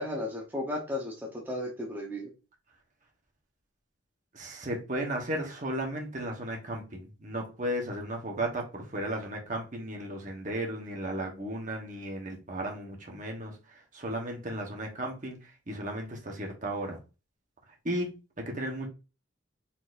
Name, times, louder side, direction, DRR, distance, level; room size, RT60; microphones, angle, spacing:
voice 1, 0.0-2.3, left 1 dB, 10° right, 0.9 m, -34 dB
voice 2, 4.3-17.0 17.8-18.1 18.4-18.9, right 1 dB, 40° right, 1.1 m, -35 dB
4.3 x 4.0 x 2.5 m
head